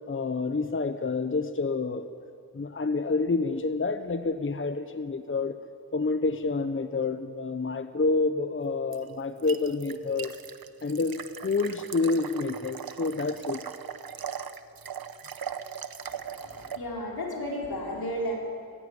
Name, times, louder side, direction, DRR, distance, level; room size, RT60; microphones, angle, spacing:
voice 1, 0.1-2.1 2.5-5.6 5.9-10.3 10.8-13.6, left 3 dB, 35° left, 10 dB, 0.8 m, -28 dB
sound 1, 8.9-16.8, right 7 dB, 75° right, 0.9 m, -39 dB
voice 2, 16.1-18.3, equal, 85° left, -2 dB, 4.4 m, -34 dB
18.5 x 16.0 x 9.4 m, 2.4 s
wide cardioid pair, 70°, 36 cm